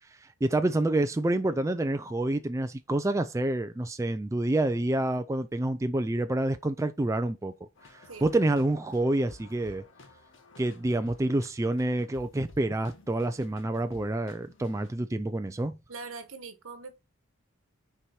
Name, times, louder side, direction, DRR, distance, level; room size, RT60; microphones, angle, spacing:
voice 1, 0.2-7.5 7.9-9.8 10.6-15.8, right 1 dB, 15° right, 0.3 m, -28 dB
sound 1, 7.8-14.9, left 2 dB, 60° left, 1.3 m, -53 dB
voice 2, 15.9-17.0, right 4 dB, 70° right, 1.3 m, -42 dB
5.9 x 4.7 x 4.3 m
head